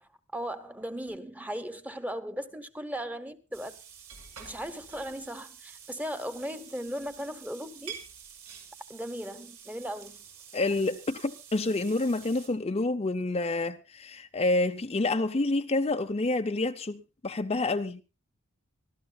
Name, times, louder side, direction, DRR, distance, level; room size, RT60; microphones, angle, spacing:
voice 1, 0.0-3.7 4.4-8.0 8.9-10.3, equal, 5° right, 1.0 m, -37 dB
sound 1, 3.5-12.5, right 7 dB, 80° right, 5.4 m, -48 dB
voice 2, 10.5-18.0, left 2 dB, 25° left, 0.6 m, -28 dB
26.0 x 13.5 x 2.3 m
head